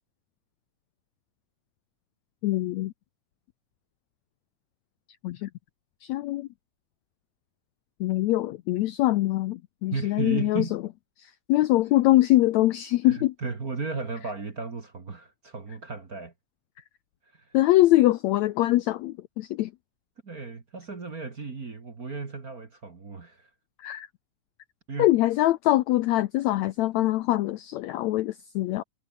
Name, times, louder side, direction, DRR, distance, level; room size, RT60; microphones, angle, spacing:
voice 1, 2.4-2.9 5.2-5.5 6.0-6.5 8.0-10.6 11.2-13.3 17.5-19.7 23.8-24.1 25.0-28.8, left 16 dB, 75° left, 1.7 m, -23 dB
voice 2, 9.9-10.7 13.0-16.3 17.3-17.5 20.2-23.5 24.9-25.1, right 4 dB, 30° right, 2.1 m, -35 dB
omnidirectional pair, 3.8 m